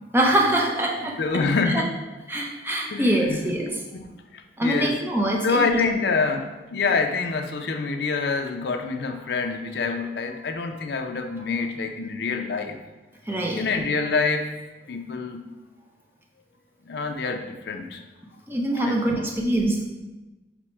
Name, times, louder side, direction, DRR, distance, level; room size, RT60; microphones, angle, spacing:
voice 1, 0.1-1.2 1.7-1.8 2.3-3.8 4.6-5.8 13.3-13.6 18.5-19.8, right 1 dB, 10° right, -1 dB, 0.5 m, -24 dB
voice 2, 1.2-1.9 2.9-3.5 3.9-5.0 5.4-12.8 13.5-14.5 14.9-15.4 16.9-18.0 18.8-19.3, left 4 dB, 65° left, 5 dB, 0.4 m, -26 dB
5.8 x 2.1 x 4.3 m, 1.1 s
head